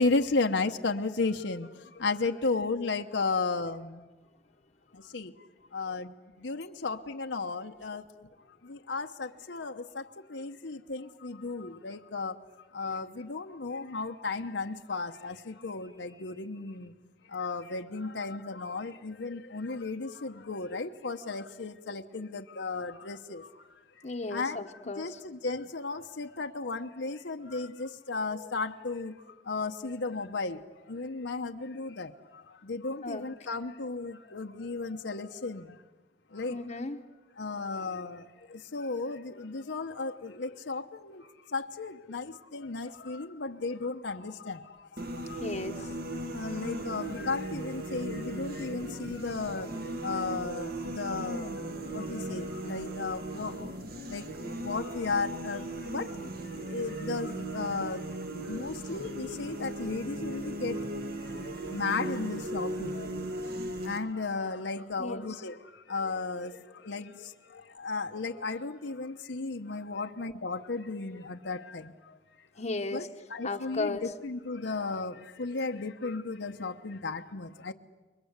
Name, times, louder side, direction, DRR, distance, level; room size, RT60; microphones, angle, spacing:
voice 1, 0.0-4.1 4.9-12.4 12.7-16.9 17.2-24.0 24.3-24.7 25.0-35.8 36.3-36.6 37.4-45.4 45.8-58.2 58.4-72.5 72.9-77.7, left 3 dB, 80° left, 5 dB, 1.0 m, -35 dB
voice 2, 24.0-25.2 33.0-33.2 36.5-37.0 45.4-45.9 65.0-65.2 72.5-73.1 73.4-74.1, left 3 dB, 40° left, 3 dB, 1.0 m, -35 dB
sound 1, 45.0-64.0, right 1 dB, 60° right, 1.7 m, -37 dB
29.5 x 22.5 x 8.1 m, 1.2 s
head